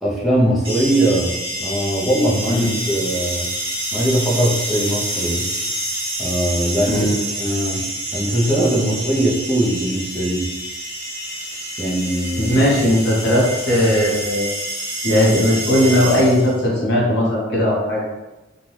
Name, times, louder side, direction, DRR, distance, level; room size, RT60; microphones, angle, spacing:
voice 1, 0.0-3.5 3.9-5.5 6.2-6.9 7.4-7.9 8.1-10.5 11.8-12.5, right 1 dB, ahead, -6 dB, 0.5 m, -20 dB
sound 1, 0.6-16.6, right 1 dB, 30° right, 1.2 m, -28 dB
voice 2, 6.9-7.2 12.4-14.5 15.0-18.0, left 1 dB, 55° left, -5 dB, 0.9 m, -17 dB
2.6 x 2.2 x 3.1 m, 1.0 s
head